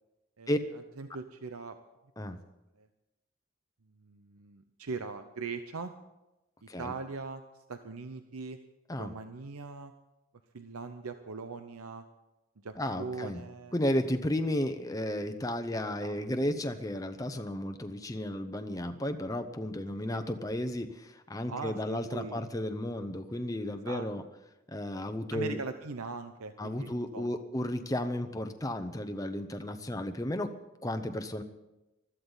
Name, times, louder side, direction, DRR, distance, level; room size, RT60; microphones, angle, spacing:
voice 1, 0.4-1.8 2.2-2.3 2.7-2.9 3.8-5.9 6.6-8.6 9.0-9.9 10.5-12.0 12.6-13.8 16.0-16.2 20.1-20.2 21.5-22.5 23.7-24.1 25.3-27.4, right 4 dB, 90° right, 9 dB, 0.8 m, -41 dB
voice 2, 12.8-13.4 13.7-24.2 24.7-25.6 26.6-30.5 30.8-31.4, left 1 dB, 15° left, 7 dB, 0.7 m, -33 dB
20.0 x 13.5 x 4.0 m, 0.98 s
head